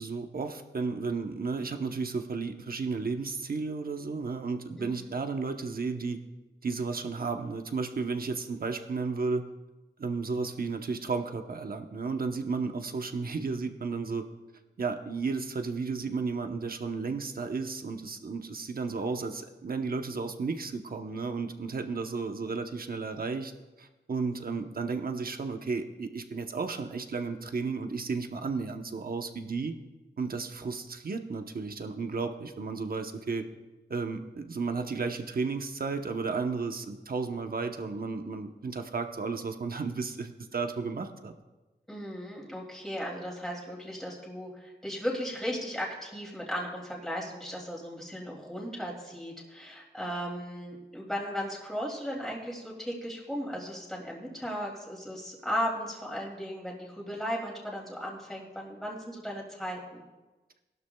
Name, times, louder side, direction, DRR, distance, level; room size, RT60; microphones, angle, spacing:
voice 1, 0.0-6.2 6.6-9.5 10.0-14.2 14.8-23.5 23.8-29.7 30.2-33.5 33.9-41.3, right 4 dB, 55° right, 6 dB, 0.9 m, -33 dB
voice 2, 4.8-5.1 41.9-60.0, equal, ahead, -3 dB, 2.6 m, -36 dB
18.5 x 12.0 x 2.3 m, 1.1 s
wide cardioid pair, 110°, 18 cm